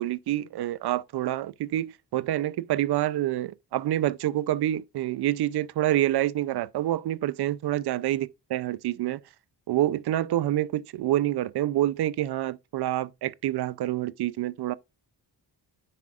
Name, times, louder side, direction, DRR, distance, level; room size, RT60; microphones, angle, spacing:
voice 1, 0.0-9.2 9.7-14.7, right 13 dB, 65° right, 0.5 m, -27 dB
9.8 x 4.9 x 2.4 m
wide cardioid pair, 150°, 41 cm